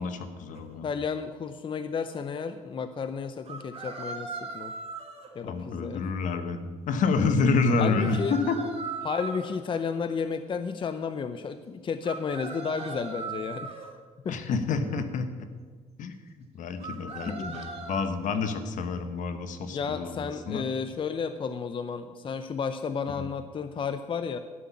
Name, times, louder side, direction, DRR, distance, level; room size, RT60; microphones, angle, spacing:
voice 1, 0.0-0.9 5.4-8.6 14.3-15.5 16.0-16.2 16.5-20.7 23.2-23.3, left 4 dB, 70° left, 9 dB, 1.2 m, -28 dB
sound 1, 0.5-0.6 3.5-5.3 7.7-9.5 12.0-13.9 16.8-18.0, right 4 dB, 50° right, 2.1 m, -38 dB
voice 2, 0.8-4.7 5.3-6.0 7.8-8.3 9.0-13.9 14.2-14.4 17.3-17.6 19.7-24.4, left 6 dB, 40° left, 10 dB, 0.6 m, -32 dB
12.5 x 5.8 x 8.5 m, 1.5 s
cardioid pair, 95°, 14 cm